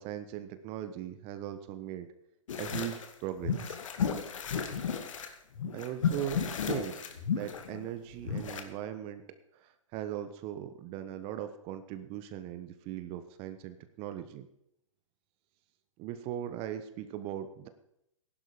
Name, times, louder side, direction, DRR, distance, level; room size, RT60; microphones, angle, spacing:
voice 1, 0.0-2.1 2.5-3.8 5.7-9.2 9.5-14.5 16.0-17.7, right 11 dB, 35° right, 10 dB, 1.3 m, -39 dB
sound 1, 2.5-3.1 3.4-5.3 5.5-8.6, left 6 dB, 70° left, 2.2 m, -33 dB
15.5 x 11.5 x 5.1 m, 0.77 s
hypercardioid pair, 120°, 17 cm